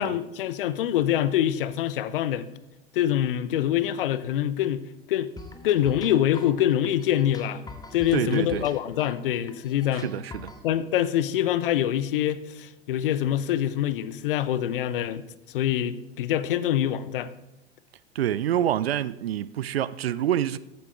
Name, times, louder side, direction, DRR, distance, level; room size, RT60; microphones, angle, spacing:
voice 1, 0.0-2.5 2.9-4.8 5.1-5.3 5.6-7.6 7.9-10.1 10.6-15.2 15.5-17.3, left 11 dB, 60° left, 0.7 m, -25 dB
sound 1, 5.4-10.6, left 3 dB, 10° left, 1.1 m, -44 dB
voice 2, 8.1-8.6 9.9-10.5 18.2-20.6, right 11 dB, 70° right, 0.5 m, -27 dB
14.5 x 8.5 x 3.3 m
figure-of-eight pair, 85°, 31 cm